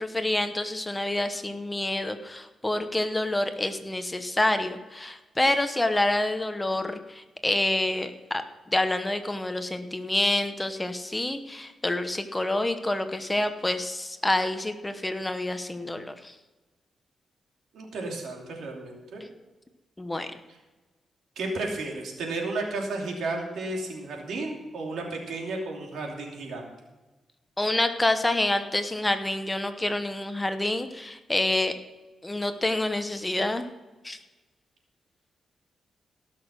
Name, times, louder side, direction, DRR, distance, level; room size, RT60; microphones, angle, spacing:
voice 1, 0.0-8.4 8.7-16.3 20.0-20.3 27.6-31.7 32.2-33.6 34.0-34.2, left 1 dB, 15° left, 8 dB, 0.9 m, -27 dB
voice 2, 17.7-19.2 21.4-26.7, right 2 dB, 85° right, 1 dB, 2.8 m, -33 dB
17.5 x 6.5 x 6.1 m, 1.2 s
cardioid pair, 100°, 0 cm